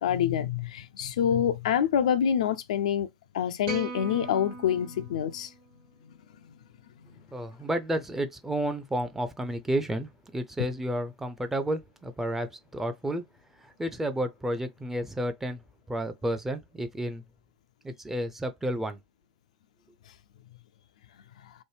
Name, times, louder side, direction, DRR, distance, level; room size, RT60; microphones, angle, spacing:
voice 1, 0.0-3.1 3.3-5.5 21.4-21.5, left 9 dB, 60° left, 0.3 m, -26 dB
sound 1, 3.6-6.0, right 3 dB, 55° right, 1.3 m, -40 dB
voice 2, 7.3-13.2 13.6-15.6 15.9-17.2 17.8-19.0, right 1 dB, 10° right, 0.5 m, -31 dB
3.1 x 2.1 x 3.2 m
figure-of-eight pair, 95°, 4 cm